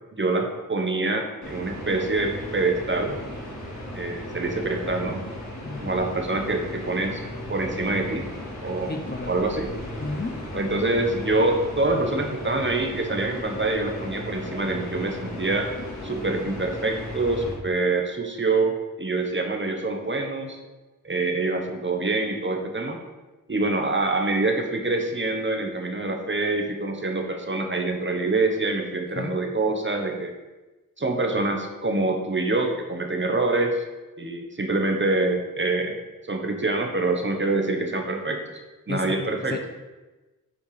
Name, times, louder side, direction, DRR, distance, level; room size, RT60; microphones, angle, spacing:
voice 1, 0.1-3.2 3.9-5.2 5.8-7.2 7.5-8.3 8.6-9.0 9.3-9.7 10.5-15.7 16.0-20.6 21.0-23.0 23.5-30.3 31.0-33.8 34.2-36.0 36.3-38.4 38.9-39.6, right 2 dB, 35° right, 3 dB, 1.1 m, -25 dB
sound 1, 1.4-17.5, left 1 dB, 55° left, 2.6 m, -36 dB
voice 2, 5.6-6.1 8.9-9.3 10.0-10.4 29.1-29.3 38.9-39.7, left 2 dB, 30° left, 4 dB, 0.7 m, -33 dB
8.6 x 4.4 x 5.0 m, 1.2 s
wide cardioid pair, 95°, 34 cm